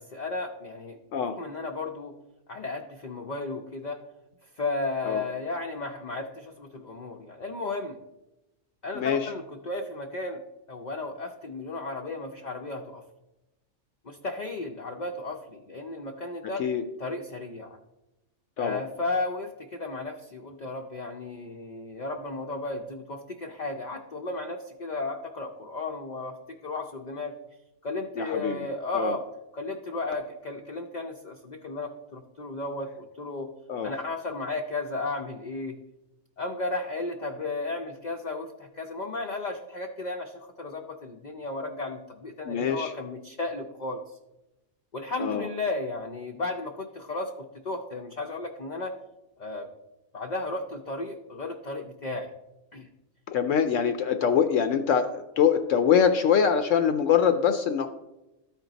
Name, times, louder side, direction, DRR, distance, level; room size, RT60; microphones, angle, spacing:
voice 1, 0.0-1.0 1.4-2.1 2.5-4.0 4.6-8.0 8.8-10.4 10.7-13.0 14.0-16.6 17.0-17.8 18.6-26.3 26.6-27.4 27.8-29.2 29.5-33.5 33.8-35.8 36.4-44.2 44.9-48.9 49.4-49.7 50.1-52.3 52.7-52.9, left 2 dB, 50° left, 3 dB, 0.5 m, -34 dB
voice 2, 28.2-28.7 28.9-29.1 33.7-33.9 42.5-42.9 45.2-45.5 53.3-57.9, left 7 dB, 70° left, 8 dB, 0.9 m, -24 dB
13.0 x 4.4 x 3.9 m, 0.97 s
omnidirectional pair, 1.4 m